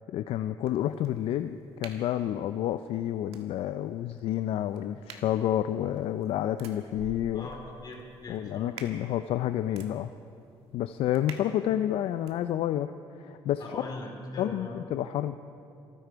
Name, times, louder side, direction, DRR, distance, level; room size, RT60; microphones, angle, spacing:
voice 1, 0.1-7.5 8.3-10.1 10.7-12.9 13.2-13.8 14.4-15.4, left 11 dB, 70° left, 10 dB, 0.4 m, -29 dB
Uniball Pen Cap Manipulation, 0.6-12.4, right 5 dB, 80° right, 1.5 m, -51 dB
voice 2, 7.3-8.7 13.6-14.7, left 2 dB, 45° left, 0 dB, 4.0 m, -40 dB
26.5 x 10.0 x 4.6 m, 2.7 s
cardioid pair, 105°, 10 cm